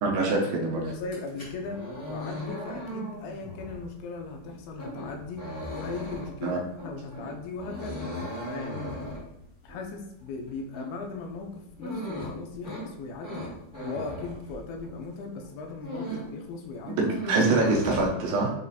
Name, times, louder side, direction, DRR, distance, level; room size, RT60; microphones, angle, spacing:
voice 1, 0.0-0.8 6.4-6.6 16.9-18.5, right 3 dB, 80° right, -1 dB, 2.3 m, -25 dB
voice 2, 0.8-5.5 5.7-8.1 8.4-9.0 9.6-13.5 13.8-17.1, left 3 dB, 80° left, 2 dB, 2.4 m, -38 dB
sound 1, 1.0-15.1 15.4-16.4 16.6-18.1, equal, 55° left, 0.8 m, -38 dB
7.0 x 2.4 x 2.6 m, 0.79 s
omnidirectional pair, 4.4 m